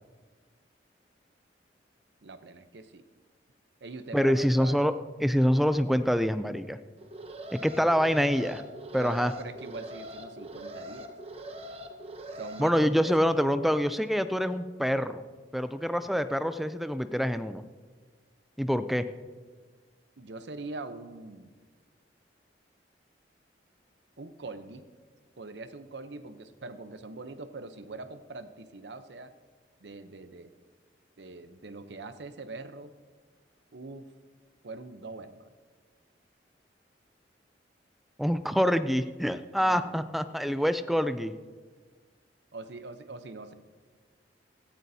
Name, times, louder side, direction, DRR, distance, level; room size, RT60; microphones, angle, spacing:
voice 1, 2.2-3.0 3.8-4.8 8.9-11.1 12.3-13.1 20.2-21.5 24.2-24.9 25.4-29.3 29.8-30.5 31.2-32.9 33.7-34.1 34.6-35.5 39.6-40.0 42.5-43.5, right 3 dB, 75° right, 10 dB, 0.8 m, -42 dB
voice 2, 4.1-4.9 5.2-6.8 7.5-8.6 8.9-9.3 12.6-15.2 15.5-17.6 18.6-19.0 38.2-41.3, equal, ahead, 11 dB, 0.3 m, -26 dB
Alarm, 7.0-12.6, right 1 dB, 35° right, 0.8 m, -43 dB
16.5 x 13.0 x 2.8 m, 1.5 s
head